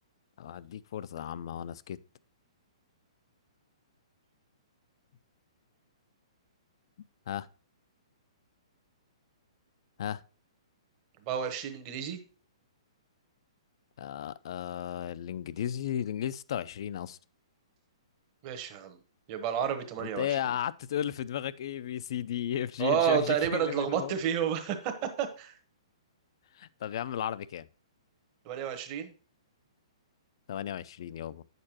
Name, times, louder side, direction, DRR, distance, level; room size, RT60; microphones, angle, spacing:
voice 1, 0.4-2.0 7.3-7.5 10.0-10.2 14.0-17.2 20.0-24.1 26.6-27.7 30.5-31.4, left 10 dB, 50° left, 0.4 m, -34 dB
voice 2, 11.2-12.2 18.4-19.0 19.3-20.4 22.8-25.5 28.4-29.1, right 8 dB, 30° right, 1.1 m, -30 dB
8.5 x 6.6 x 2.9 m
hypercardioid pair, 165°, 3 cm